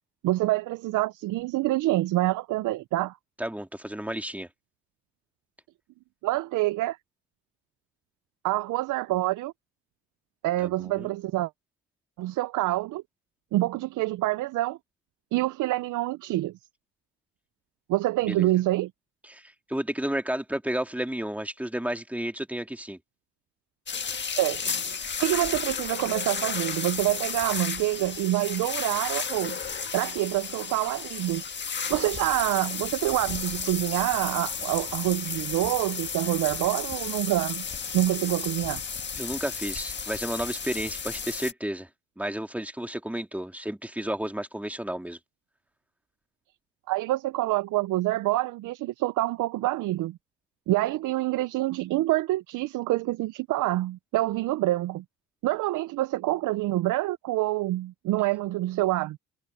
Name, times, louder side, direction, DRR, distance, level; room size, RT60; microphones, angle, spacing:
voice 1, 0.2-3.2 6.2-7.0 8.4-9.5 10.4-11.5 12.2-13.0 13.5-14.8 15.3-16.5 17.9-18.9 24.3-29.6 29.9-31.4 31.9-37.7 37.9-38.8 46.9-50.2 50.7-55.0 55.4-59.2, right 17 dB, 80° right, 0.6 m, -26 dB
voice 2, 3.4-4.5 10.6-11.1 18.3-18.5 19.3-23.0 39.2-41.9 42.2-45.2, right 1 dB, 5° right, 2.3 m, -32 dB
sound 1, 23.9-41.5, left 6 dB, 35° left, 1.6 m, -33 dB
cardioid pair, 90°, 30 cm